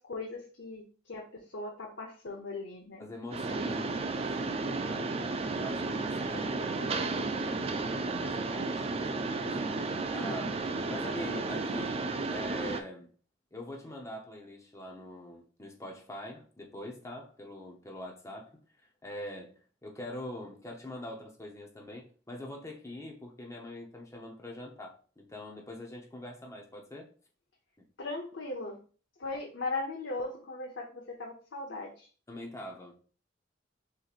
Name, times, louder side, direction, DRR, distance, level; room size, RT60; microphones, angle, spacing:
voice 1, 0.1-0.8 1.1-1.2 1.5-3.1 28.0-28.8 29.2-31.9, left 3 dB, 75° left, -1 dB, 0.8 m, -38 dB
voice 2, 3.0-12.0 12.3-13.1 13.5-27.1 27.8-27.9 32.3-32.9, left 1 dB, 15° left, 0 dB, 0.8 m, -44 dB
Mechanisms, 3.3-12.8, right 3 dB, 30° right, 0.4 m, -33 dB
6.3 x 3.1 x 2.4 m, 0.39 s
head